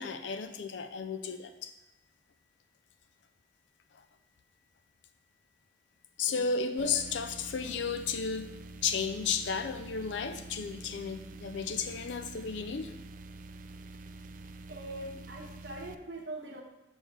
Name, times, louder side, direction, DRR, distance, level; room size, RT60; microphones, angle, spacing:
voice 1, 0.0-1.7 6.2-8.5 8.8-12.9, left 5 dB, 70° left, 8 dB, 0.4 m, -33 dB
sound 1, 6.8-16.0, right 2 dB, 45° right, 0.4 m, -47 dB
voice 2, 14.7-16.6, right 1 dB, 60° right, 0 dB, 1.3 m, -42 dB
7.0 x 5.4 x 4.7 m, 0.99 s
head